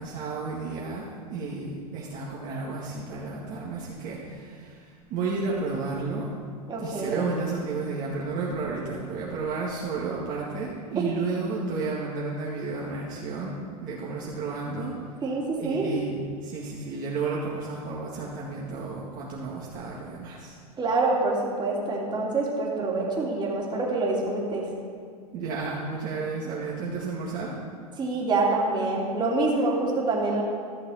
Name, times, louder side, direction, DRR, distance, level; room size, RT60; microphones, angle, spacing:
voice 1, 0.0-6.3 6.8-15.0 15.6-20.6 25.3-27.5, right 4 dB, 45° right, -4 dB, 2.0 m, -32 dB
voice 2, 6.7-7.2 11.0-11.1 15.2-15.9 20.8-24.7 28.0-30.4, right 3 dB, 20° right, -3 dB, 2.8 m, -26 dB
14.0 x 6.6 x 5.7 m, 2.2 s
hypercardioid pair, 110°, 20 cm